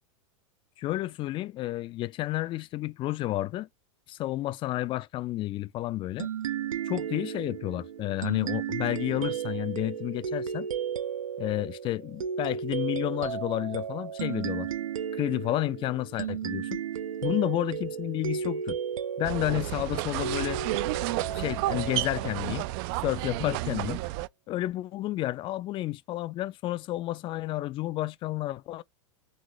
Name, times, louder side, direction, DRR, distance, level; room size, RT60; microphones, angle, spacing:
voice 1, 0.8-3.7 4.1-6.3 6.9-10.7 11.4-14.7 15.2-16.8 17.2-18.8 19.2-20.6 21.3-22.7 23.0-24.0 24.5-28.8, left 16 dB, 30° left, 0.4 m, -31 dB
sound 1, 6.2-23.4, right 8 dB, 80° right, 0.7 m, -34 dB
sound 2, 19.2-24.3, right 18 dB, 45° right, 0.4 m, -32 dB
4.1 x 3.7 x 3.0 m
hypercardioid pair, 105°, 17 cm